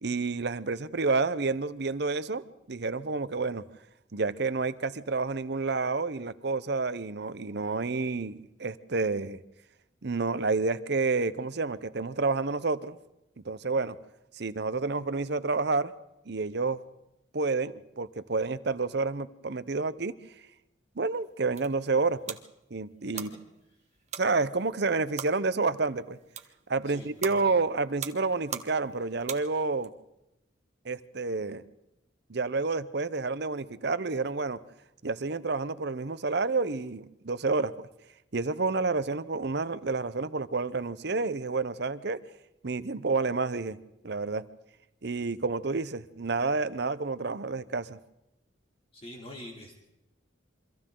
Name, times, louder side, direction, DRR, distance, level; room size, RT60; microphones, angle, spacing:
voice 1, 0.0-3.6 4.1-9.4 10.0-13.0 13.4-14.0 14.4-15.9 16.3-16.8 17.3-20.2 21.0-22.4 22.7-23.3 24.2-26.2 26.7-29.9 30.8-31.6 32.3-34.6 35.0-37.7 38.3-42.2 42.6-43.8 44.0-44.4 45.0-48.0, right 3 dB, 60° right, 14 dB, 0.8 m, -29 dB
sound 1, 21.2-29.9, right 7 dB, 35° right, 1.2 m, -43 dB
voice 2, 26.8-27.5 48.9-49.7, left 1 dB, 30° left, -1 dB, 2.9 m, -45 dB
28.0 x 24.5 x 3.9 m, 0.88 s
head